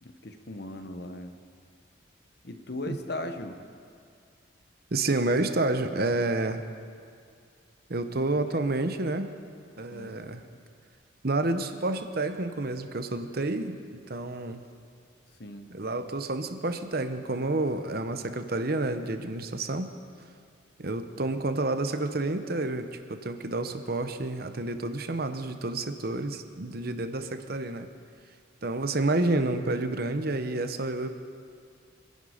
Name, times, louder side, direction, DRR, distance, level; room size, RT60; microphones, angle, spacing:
voice 1, 0.0-1.3 2.4-3.6 8.5-8.6 9.9-10.2 15.4-15.7, left 1 dB, 55° left, 7 dB, 1.1 m, -38 dB
voice 2, 4.9-6.7 7.9-9.3 9.8-10.4 11.2-14.6 15.7-19.9 20.8-27.9 28.6-31.1, right 2 dB, 50° right, 9 dB, 0.9 m, -29 dB
26.0 x 11.0 x 5.1 m, 2.3 s
head